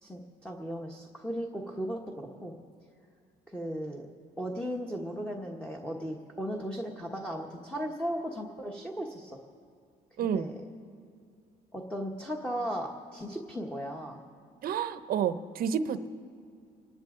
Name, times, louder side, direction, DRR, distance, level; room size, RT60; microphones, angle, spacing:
voice 1, 0.0-2.5 3.5-4.1 4.4-9.4 10.2-10.5 11.7-14.2, equal, 5° left, 0 dB, 1.3 m, -36 dB
voice 2, 10.2-10.5 14.6-16.1, right 7 dB, 60° right, 12 dB, 0.8 m, -30 dB
26.5 x 11.5 x 3.8 m, 2.3 s
cardioid pair, 110°, 17 cm